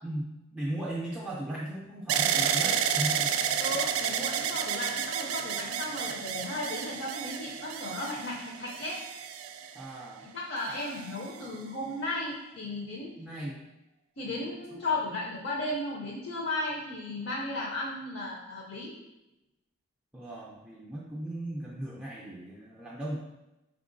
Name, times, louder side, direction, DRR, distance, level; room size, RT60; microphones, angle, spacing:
voice 1, 0.0-3.8 9.7-10.3 13.2-13.6 20.1-23.2, right 1 dB, 5° right, -6 dB, 0.4 m, -37 dB
sound 1, 2.1-10.1 10.8-11.5, right 8 dB, 90° right, 0.3 m, -31 dB
voice 2, 3.6-9.0 10.2-13.1 14.2-18.9, left 2 dB, 50° left, -3 dB, 0.6 m, -35 dB
4.5 x 3.6 x 2.6 m, 0.97 s
head